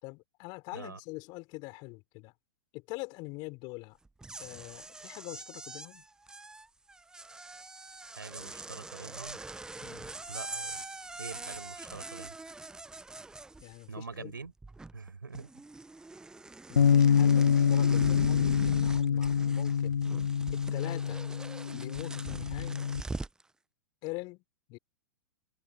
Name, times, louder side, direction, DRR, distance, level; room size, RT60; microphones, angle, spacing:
voice 1, 0.0-2.3 2.7-4.0 4.4-6.1 9.8-10.1 13.6-14.4 16.7-20.0 20.5-21.3 21.7-22.8 24.0-24.4 24.7-24.8, left 26 dB, 40° left, 4.9 m, -44 dB
sound 1, 4.1-14.1 14.4-15.1 15.3-23.4, right 3 dB, 5° right, 0.7 m, -43 dB
voice 2, 8.2-9.4 10.3-10.8 11.2-12.3 13.9-14.5 14.9-15.5, right 4 dB, 80° right, 4.8 m, -44 dB
Bass guitar, 16.8-23.0, left 7 dB, 80° left, 0.4 m, -26 dB
figure-of-eight pair, 100°, 11 cm